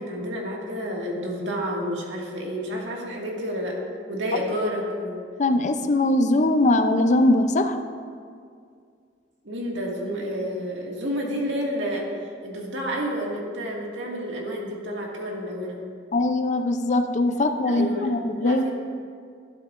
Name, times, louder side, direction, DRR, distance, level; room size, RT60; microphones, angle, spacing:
voice 1, 0.0-3.8 4.1-5.2 9.4-12.1 12.4-15.8 17.7-18.1 18.4-18.7, equal, 85° right, -2 dB, 1.9 m, -30 dB
voice 2, 5.4-7.8 16.1-18.7, left 2 dB, 40° left, 9 dB, 0.5 m, -21 dB
11.5 x 11.5 x 2.5 m, 2.2 s
head